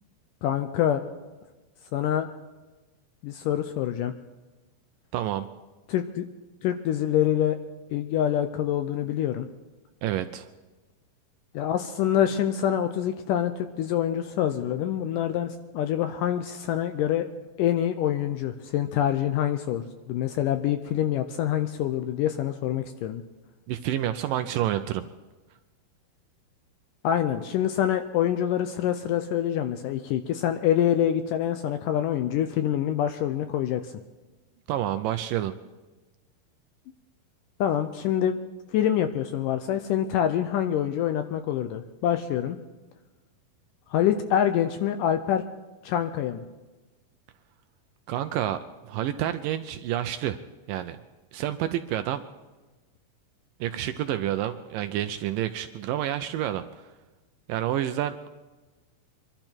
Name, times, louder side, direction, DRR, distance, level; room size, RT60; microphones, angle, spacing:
voice 1, 0.4-1.0 1.9-2.3 3.2-4.1 5.9-6.3 6.6-7.6 7.9-9.5 11.5-17.3 17.6-23.2 27.0-33.9 37.6-38.4 38.7-42.6 43.9-45.4 45.8-46.4, left 10 dB, 80° left, 8 dB, 2.0 m, -26 dB
voice 2, 5.1-5.5 10.0-10.5 23.7-25.0 34.7-35.6 48.1-50.4 50.7-51.0 51.3-52.2 53.6-56.9 57.5-58.3, right 12 dB, 80° right, 9 dB, 2.1 m, -29 dB
24.5 x 12.0 x 4.5 m, 1.2 s
omnidirectional pair, 4.3 m